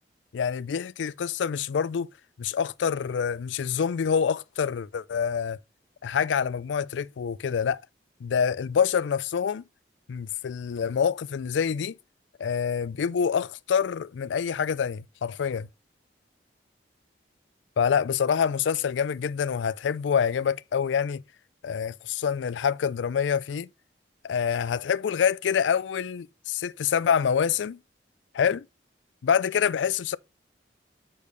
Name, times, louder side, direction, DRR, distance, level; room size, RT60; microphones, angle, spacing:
voice 1, 0.3-2.1 2.4-5.6 6.0-7.8 8.2-9.6 10.1-12.0 12.4-15.7 17.8-21.2 21.6-23.7 24.2-27.8 28.3-28.6 29.2-30.2, left 7 dB, 90° left, 0.4 m, -26 dB
8.4 x 6.6 x 3.3 m
head